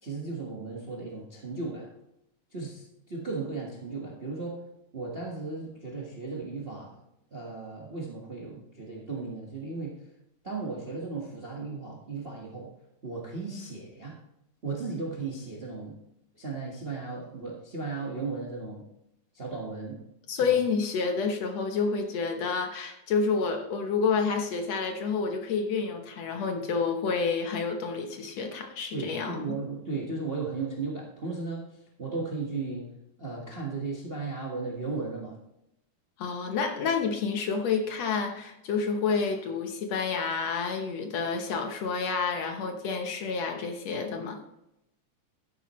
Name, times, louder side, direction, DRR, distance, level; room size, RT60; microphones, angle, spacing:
voice 1, 0.0-1.9 2.5-4.7 4.9-6.9 7.3-10.1 10.4-12.7 13.0-14.2 14.6-16.0 16.3-18.9 19.3-20.0 20.4-20.5 28.9-31.7 32.0-32.9 33.2-35.4, right 3 dB, 30° right, -2 dB, 1.0 m, -35 dB
voice 2, 20.3-29.6 36.2-44.4, left 5 dB, 65° left, 4 dB, 2.0 m, -29 dB
12.0 x 10.0 x 3.1 m, 0.83 s
omnidirectional pair, 3.4 m